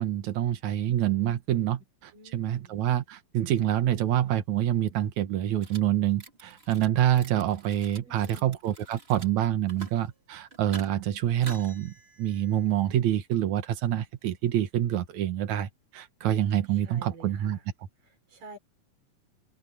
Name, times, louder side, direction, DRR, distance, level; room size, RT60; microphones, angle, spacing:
voice 1, 0.0-11.9 12.2-17.6, right 11 dB, 65° right, 2.4 m, -27 dB
voice 2, 2.1-2.8 8.0-8.6 16.7-17.6 18.0-18.6, right 2 dB, 85° right, 7.8 m, -49 dB
sound 1, 5.6-5.8 6.1-6.9 7.2-9.3 9.6-10.1 10.5-10.9 11.3-12.8, right 3 dB, 25° right, 1.7 m, -47 dB
omnidirectional pair, 3.8 m